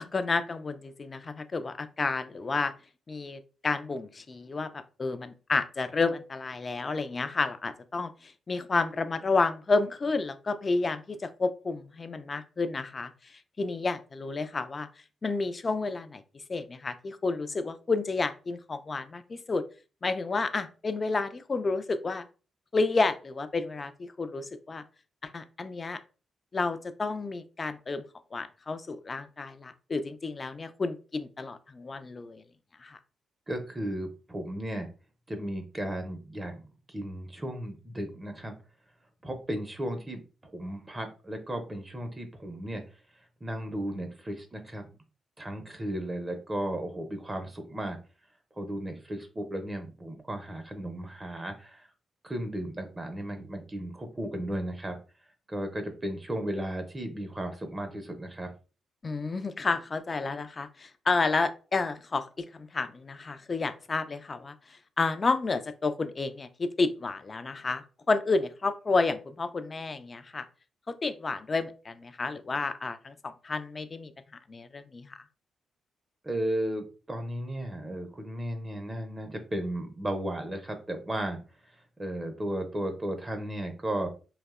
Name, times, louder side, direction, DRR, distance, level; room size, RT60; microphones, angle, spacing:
voice 1, 0.0-2.7 3.1-14.9 15.2-19.6 20.0-22.3 22.7-24.8 25.3-26.0 26.5-28.0 28.3-32.4 32.8-33.0 59.0-70.5 70.9-74.1 74.5-75.2, left 3 dB, 40° left, 11 dB, 0.3 m, -30 dB
voice 2, 33.5-34.9 35.3-38.5 39.2-40.2 40.5-42.8 43.4-44.8 45.4-48.0 48.6-51.9 52.2-55.0 55.5-58.5 76.2-81.4 82.0-84.1, right 1 dB, 25° right, 6 dB, 0.5 m, -35 dB
2.6 x 2.0 x 2.3 m, 0.34 s
hypercardioid pair, 45°, 0 cm